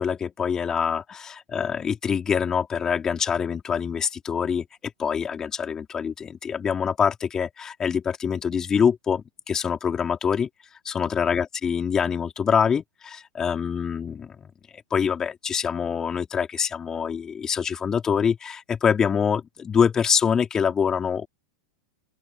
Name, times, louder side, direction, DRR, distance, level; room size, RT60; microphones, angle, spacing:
voice 1, 0.0-4.6 5.0-10.5 10.8-14.5 14.9-21.3, left 7 dB, 25° left, 3.9 m, -25 dB
open air
figure-of-eight pair, 90°, 3 cm